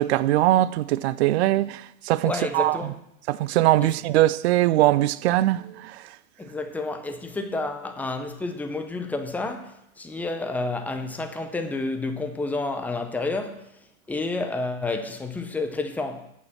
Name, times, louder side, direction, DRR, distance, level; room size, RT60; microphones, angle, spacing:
voice 1, 0.0-2.8 3.3-6.0, right 15 dB, 50° right, 0.4 m, -21 dB
voice 2, 2.2-3.0 3.8-4.0 6.4-16.3, left 3 dB, 5° left, 0.5 m, -30 dB
8.4 x 6.4 x 7.1 m
hypercardioid pair, 115°, 44 cm